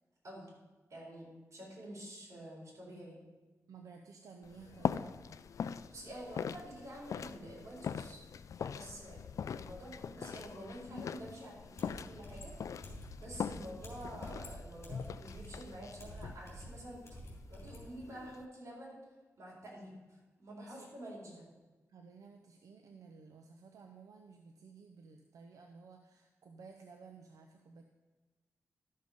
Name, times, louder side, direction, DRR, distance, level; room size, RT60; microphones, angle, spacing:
voice 1, 0.9-3.2 5.9-8.2 8.7-9.2 9.6-12.5 13.2-17.0 17.5-19.0 19.4-21.4, right 1 dB, 60° right, -3 dB, 4.1 m, -48 dB
voice 2, 3.7-5.3 13.5-13.7 20.6-20.9 21.9-27.8, right 5 dB, 85° right, 4 dB, 0.7 m, -55 dB
sound 1, 4.4-18.5, left 7 dB, 70° left, 0.3 m, -42 dB
sound 2, 11.7-17.9, equal, 45° left, 3.3 m, -49 dB
12.0 x 6.6 x 5.3 m, 1.2 s
wide cardioid pair, 95°, 6 cm